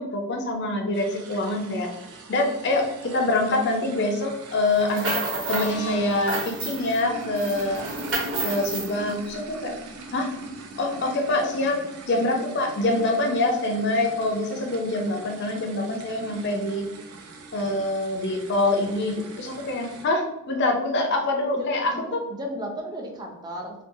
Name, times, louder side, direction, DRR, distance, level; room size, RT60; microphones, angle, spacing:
voice 1, 0.0-1.9 2.3-5.1 5.5-7.8 8.4-9.8 10.1-10.3 10.8-11.8 12.1-16.9 17.5-22.2, left 2 dB, 50° left, 3 dB, 0.4 m, -25 dB
sound 1, 0.9-20.0, right 3 dB, 80° right, 0.5 m, -41 dB
sound 2, 4.7-5.7 6.1-7.0 7.4-8.9, right 2 dB, 55° right, 0.8 m, -30 dB
sound 3, 5.3-9.5, left 2 dB, 85° left, 0.7 m, -43 dB
voice 2, 21.6-23.8, equal, 20° right, 1 dB, 0.4 m, -35 dB
2.5 x 2.2 x 2.6 m, 0.90 s
head